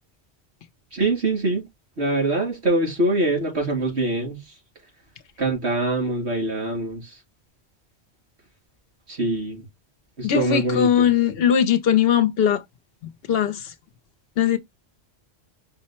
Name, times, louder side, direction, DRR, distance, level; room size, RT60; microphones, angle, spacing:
voice 1, 0.9-1.6 2.0-4.4 5.4-7.0 9.1-9.6 10.2-11.1, right 2 dB, 85° right, 2.8 m, -24 dB
voice 2, 10.2-12.6 13.3-13.7 14.4-14.6, left 9 dB, 70° left, 0.9 m, -19 dB
5.5 x 2.1 x 4.2 m
omnidirectional pair, 1.1 m